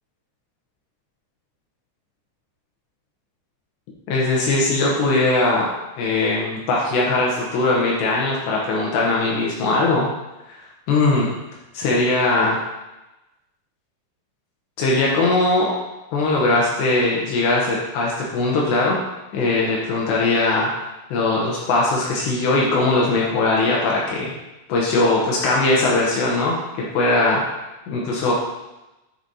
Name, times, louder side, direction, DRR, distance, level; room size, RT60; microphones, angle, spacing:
voice 1, 4.1-5.7 6.0-10.1 10.9-11.3 11.7-12.6 14.8-15.7 16.1-19.0 19.3-20.7 21.1-24.3 24.7-27.4 27.9-28.3, left 2 dB, 75° left, -3 dB, 2.8 m, -20 dB
9.1 x 5.0 x 2.8 m, 1.0 s
omnidirectional pair, 5.6 m